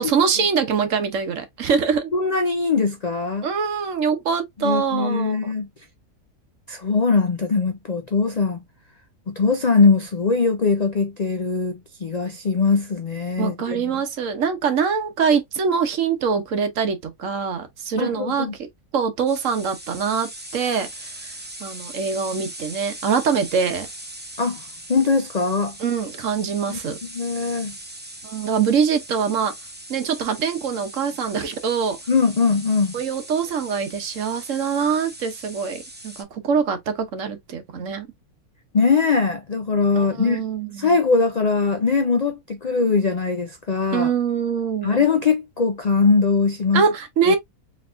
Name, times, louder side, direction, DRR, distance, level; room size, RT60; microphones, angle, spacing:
voice 1, 0.0-2.1 3.4-5.5 13.4-18.5 18.9-23.9 25.8-27.0 28.2-29.5 29.9-32.0 32.9-38.1 39.9-41.0 43.9-45.0 46.7-47.4, right 6 dB, 60° right, 1.2 m, -24 dB
voice 2, 2.1-3.5 4.6-5.7 6.7-8.6 9.3-13.8 18.0-18.5 24.4-24.6 24.9-25.7 26.7-27.7 32.1-32.9 38.7-40.4 40.8-44.1 44.8-46.8 47.3-47.4, left 4 dB, 85° left, 0.3 m, -21 dB
sound 1, 19.3-36.2, right 1 dB, 10° right, 0.6 m, -40 dB
4.2 x 3.4 x 2.5 m
omnidirectional pair, 1.6 m